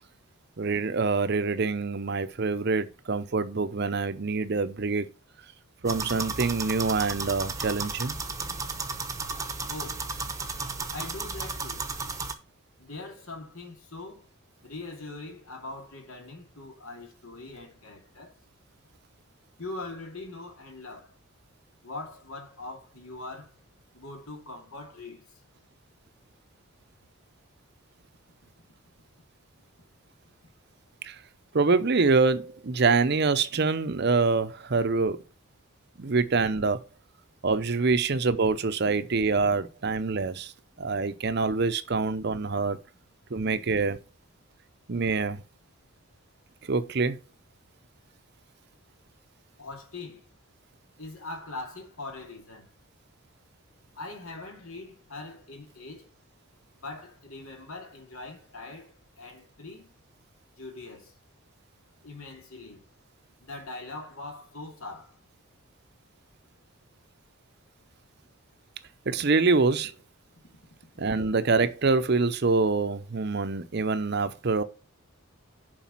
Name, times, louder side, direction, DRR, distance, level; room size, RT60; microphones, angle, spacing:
voice 1, 0.6-5.1 5.8-8.2 31.0-31.2 31.5-35.2 36.0-36.8 37.4-40.5 40.8-42.8 43.3-44.0 44.9-45.4 46.7-47.2 69.1-69.9 71.0-74.6, right 4 dB, 50° right, 0.6 m, -25 dB
sound 1, 5.8-12.3, right 3 dB, 15° right, 0.9 m, -34 dB
voice 2, 9.7-10.1 10.9-11.8 12.8-14.3 14.6-18.3 19.6-21.1 21.8-23.5 23.9-25.2 49.6-50.2 51.0-52.7 54.0-56.1 56.8-59.9 60.6-61.1 62.0-62.8 63.5-65.1, left 2 dB, 75° left, 2.5 m, -41 dB
7.3 x 4.8 x 5.8 m
head